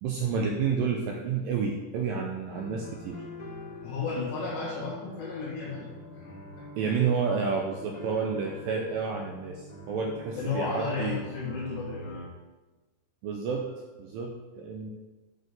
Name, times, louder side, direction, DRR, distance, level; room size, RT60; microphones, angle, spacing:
voice 1, 0.0-3.2 6.8-11.2 13.2-13.7 14.0-14.9, right 5 dB, 85° right, 1 dB, 2.0 m, -30 dB
sound 1, 2.5-12.3, left 1 dB, 50° left, 1.9 m, -43 dB
voice 2, 3.8-5.9 6.1-6.7 10.4-12.2, left 4 dB, 85° left, -10 dB, 4.2 m, -34 dB
9.3 x 4.1 x 6.6 m, 1.2 s
omnidirectional pair, 4.8 m